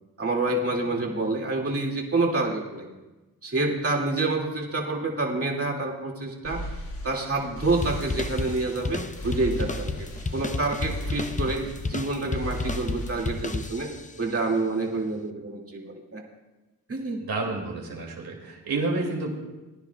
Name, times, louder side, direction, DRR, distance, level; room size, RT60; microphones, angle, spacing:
voice 1, 0.2-2.9 3.4-6.6 7.0-13.9 14.2-16.2 16.9-17.2, right 2 dB, 40° right, 0 dB, 2.3 m, -28 dB
sound 1, 6.4-13.8, equal, 70° left, 4.3 m, -37 dB
sound 2, 7.8-14.2, left 3 dB, 20° left, 0.7 m, -32 dB
voice 2, 17.2-19.3, right 3 dB, 75° right, 0 dB, 2.6 m, -30 dB
20.0 x 10.0 x 2.3 m, 1.1 s
cardioid pair, 50°, 37 cm